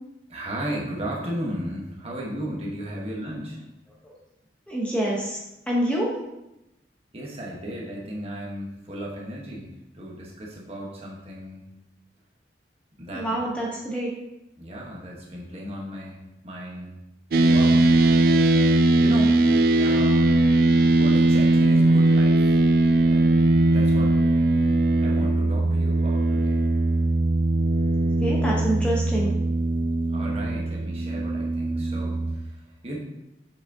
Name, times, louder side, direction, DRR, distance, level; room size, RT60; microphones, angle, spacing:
voice 1, 0.3-3.6 7.1-11.7 13.0-13.3 14.6-17.0 17.4-17.9 19.0-19.4 19.8-20.6 20.9-22.6 23.1-24.2 25.0-26.6 30.1-32.5 32.8-33.0, equal, 35° right, -3 dB, 1.1 m, -35 dB
voice 2, 4.7-5.4 5.7-6.1 13.1-14.1 28.2-29.3, right 1 dB, 5° left, -4 dB, 0.9 m, -26 dB
sound 1, 17.3-32.4, right 2 dB, 55° right, 0.4 m, -20 dB
6.8 x 5.0 x 2.7 m, 0.92 s
head